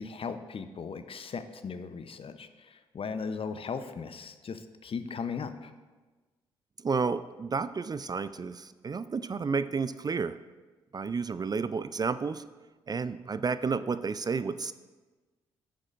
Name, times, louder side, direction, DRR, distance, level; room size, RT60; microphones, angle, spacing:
voice 1, 0.0-5.7, left 5 dB, 45° left, 11 dB, 0.7 m, -37 dB
voice 2, 6.8-10.4 10.9-12.4 12.9-14.7, right 5 dB, 30° right, 14 dB, 0.4 m, -31 dB
10.5 x 8.8 x 2.5 m, 1.3 s
hypercardioid pair, 40°, 13 cm